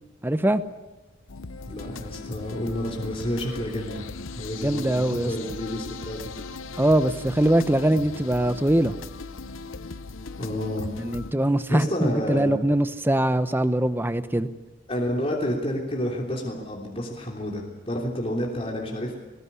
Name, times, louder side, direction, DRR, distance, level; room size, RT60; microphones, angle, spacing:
voice 1, 0.2-0.6 4.6-5.3 6.8-8.9 11.0-14.5, right 1 dB, 10° right, 12 dB, 0.9 m, -22 dB
sound 1, 1.3-11.3, left 4 dB, 85° left, 0.9 m, -38 dB
voice 2, 1.7-4.0 4.3-6.3 10.4-11.0 11.7-12.5 14.9-19.2, equal, 30° left, -1 dB, 3.3 m, -30 dB
20.0 x 19.5 x 9.8 m, 1.1 s
head